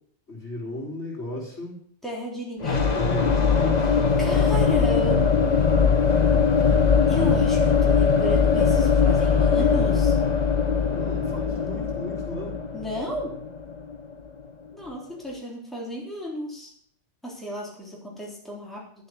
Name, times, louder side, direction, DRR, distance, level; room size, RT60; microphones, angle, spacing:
voice 1, 0.3-1.8 2.9-4.3 10.8-12.6, left 1 dB, 65° left, -8 dB, 4.6 m, -35 dB
voice 2, 2.0-2.9 3.8-5.2 7.1-10.2 12.7-13.4 14.7-16.7 17.2-18.9, equal, ahead, -4 dB, 3.5 m, -34 dB
sound 1, 2.6-14.4, left 5 dB, 35° left, 1.2 m, -21 dB
12.5 x 7.9 x 7.0 m, 0.62 s
omnidirectional pair, 1.2 m